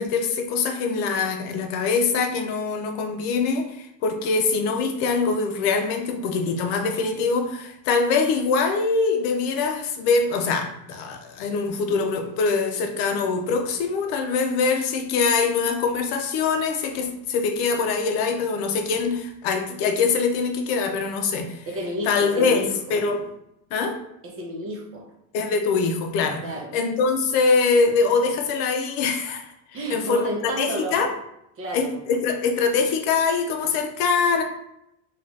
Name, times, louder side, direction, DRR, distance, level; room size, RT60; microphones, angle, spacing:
voice 1, 0.0-21.7 22.0-23.2 23.7-24.0 25.3-26.4 26.7-31.1 31.7-34.4, left 4 dB, 65° left, 4 dB, 0.6 m, -23 dB
voice 2, 21.7-22.9 24.2-25.0 26.4-26.7 29.7-31.0 31.6-32.0, right 1 dB, 35° right, -1 dB, 0.8 m, -31 dB
2.6 x 2.4 x 3.2 m, 0.81 s
supercardioid pair, 120°, 41 cm